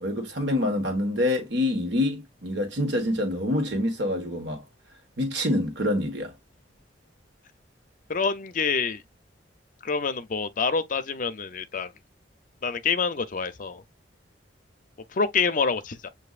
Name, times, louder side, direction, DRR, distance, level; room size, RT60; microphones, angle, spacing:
voice 1, 0.0-4.6 5.2-6.3, left 1 dB, 75° right, 1.4 m, -26 dB
voice 2, 8.1-9.0 9.8-11.9 12.6-13.8 15.1-16.1, left 5 dB, 45° left, 0.5 m, -27 dB
7.7 x 2.6 x 2.4 m
head